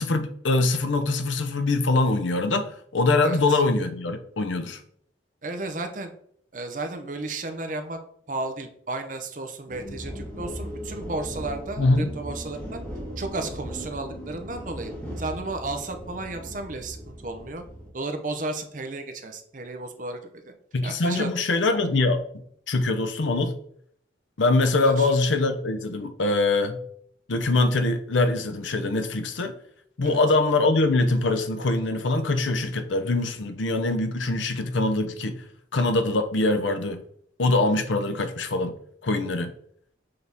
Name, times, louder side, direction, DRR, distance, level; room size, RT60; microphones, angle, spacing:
voice 1, 0.0-4.8 11.8-12.1 20.7-22.2 22.7-23.5 24.4-26.8 27.3-29.5 30.0-35.4 35.7-37.0 37.4-38.7 39.0-39.5, left 2 dB, 80° left, 7 dB, 0.7 m, -23 dB
voice 2, 3.2-3.6 5.4-6.1 6.5-8.0 8.3-12.8 13.2-14.9 15.2-17.6 17.9-20.5 20.8-21.3 24.8-25.1 30.0-30.2, right 2 dB, 45° right, 6 dB, 0.7 m, -33 dB
sound 1, 9.7-17.9, equal, 10° left, 1.6 m, -37 dB
6.8 x 4.0 x 3.5 m, 0.65 s
head